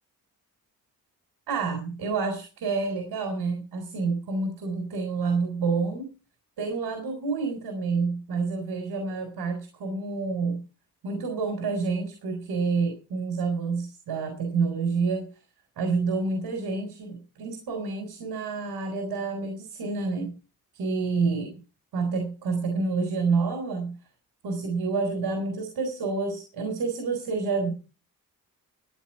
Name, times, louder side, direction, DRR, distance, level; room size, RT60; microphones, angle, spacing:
voice 1, 1.5-6.1 6.6-10.6 11.0-15.3 15.8-20.3 20.7-21.5 21.9-23.9 24.4-27.7, right 4 dB, 90° right, 4 dB, 4.2 m, -28 dB
14.5 x 9.9 x 4.7 m, 0.34 s
cardioid pair, 50°, 37 cm